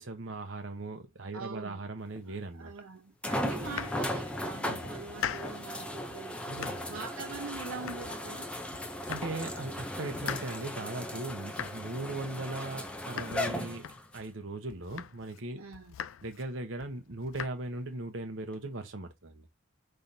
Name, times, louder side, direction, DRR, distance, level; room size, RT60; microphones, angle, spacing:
voice 1, 0.0-2.7 4.7-4.9 6.5-7.0 9.1-15.6 16.2-19.5, right 2 dB, 65° right, 0.9 m, -39 dB
voice 2, 1.3-1.9 2.3-6.4 6.9-8.5 15.6-16.0, right 4 dB, 85° right, 0.8 m, -43 dB
sound 1, 2.2-2.3 3.2-14.3 15.0-15.1 18.5-18.6, left 1 dB, 5° left, 0.5 m, -37 dB
Domestic sounds home sounds, 3.5-4.5 4.8-5.7 6.1-7.0 7.3-8.4 8.7-9.5 9.8-14.3 14.7-15.4 15.7-16.5 16.8-17.5, left 9 dB, 70° left, 0.3 m, -42 dB
5.6 x 3.3 x 2.7 m
head